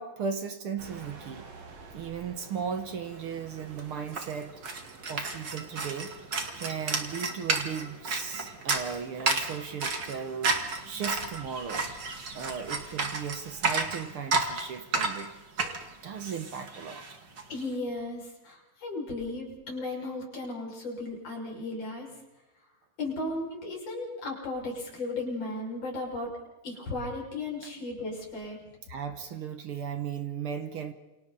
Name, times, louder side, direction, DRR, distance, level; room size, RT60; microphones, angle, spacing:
voice 1, 0.0-1.5 1.9-4.6 5.1-6.2 6.5-11.9 12.3-15.3 15.6-17.0 28.9-30.9, right 7 dB, 65° right, 8 dB, 1.4 m, -36 dB
sound 1, 0.8-10.8, right 4 dB, 80° right, 4.6 m, -51 dB
sound 2, 3.3-3.4 3.6-17.4, right 3 dB, 35° right, 2.4 m, -32 dB
voice 2, 17.5-22.1 23.0-26.3 26.6-28.6, left 2 dB, 45° left, -2 dB, 7.2 m, -35 dB
29.0 x 26.5 x 4.1 m, 1.1 s
omnidirectional pair, 4.0 m